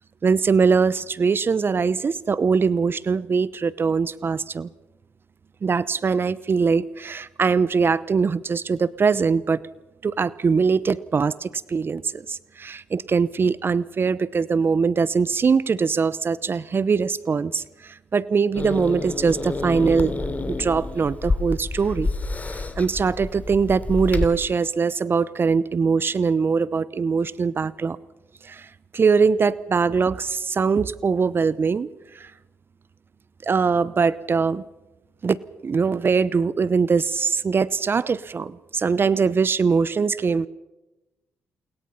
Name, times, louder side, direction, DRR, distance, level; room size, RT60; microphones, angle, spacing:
voice 1, 0.2-4.7 5.6-9.6 10.0-20.2 20.5-22.1 22.8-28.0 28.4-31.9 32.1-32.3 33.4-34.6 35.2-40.5, right 5 dB, 45° right, 18 dB, 0.8 m, -22 dB
Growling / Hiss, 18.5-24.2, left 3 dB, 30° left, 3.3 m, -28 dB
28.0 x 22.0 x 5.7 m, 0.98 s
supercardioid pair, 55°, 5 cm